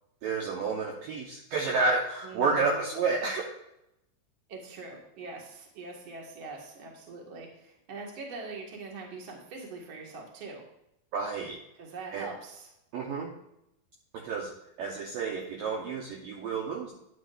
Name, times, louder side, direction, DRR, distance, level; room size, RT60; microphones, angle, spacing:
voice 1, 0.2-3.5 11.1-11.6 12.1-12.3 12.9-13.3 14.1-14.5 14.8-16.9, right 4 dB, 70° right, -1 dB, 2.2 m, -30 dB
voice 2, 2.2-3.0 4.5-10.6 11.8-12.7, right 3 dB, 45° right, -1 dB, 1.7 m, -43 dB
11.0 x 10.0 x 2.6 m, 0.81 s
omnidirectional pair, 5.0 m